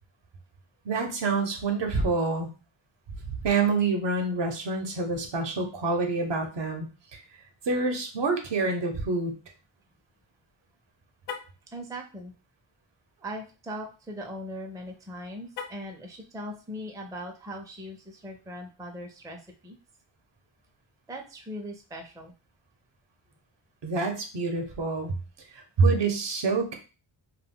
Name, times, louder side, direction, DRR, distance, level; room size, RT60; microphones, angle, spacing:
voice 1, 0.8-2.5 3.4-7.2 7.7-9.3 23.8-25.1 25.8-26.8, right 3 dB, 65° right, 4 dB, 0.8 m, -27 dB
Car, 11.2-11.6 15.5-16.0, left 6 dB, 60° left, 0.6 m, -39 dB
voice 2, 11.7-12.3 13.2-19.8 21.1-22.3, equal, 10° right, 2 dB, 0.4 m, -39 dB
2.3 x 2.1 x 3.6 m, 0.34 s
wide cardioid pair, 105°, 47 cm